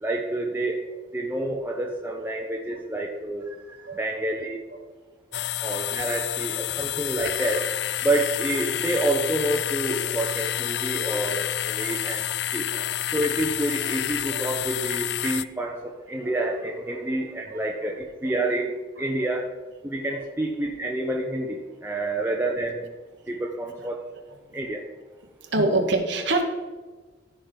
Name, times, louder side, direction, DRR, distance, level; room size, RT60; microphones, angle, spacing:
voice 1, 0.0-0.8 1.1-4.6 5.6-7.7 8.0-12.7 13.1-19.5 19.8-22.9 23.3-24.0 24.5-24.9, right 1 dB, 10° right, -1 dB, 0.7 m, -28 dB
voice 2, 2.2-2.8 3.8-4.3 4.7-4.8 5.3-5.6 6.6-6.7 10.0-10.2 10.9-11.1 11.6-12.0 12.7-13.0 14.3-14.5 16.8-17.0 17.5-17.9 19.0-19.3 20.1-20.3 22.0-22.2 23.8-23.9 25.4-26.4, right 2 dB, 70° right, 4 dB, 1.1 m, -30 dB
sound 1, 5.3-15.5, left 12 dB, 60° left, 0.3 m, -29 dB
14.5 x 5.1 x 3.9 m, 1.3 s
head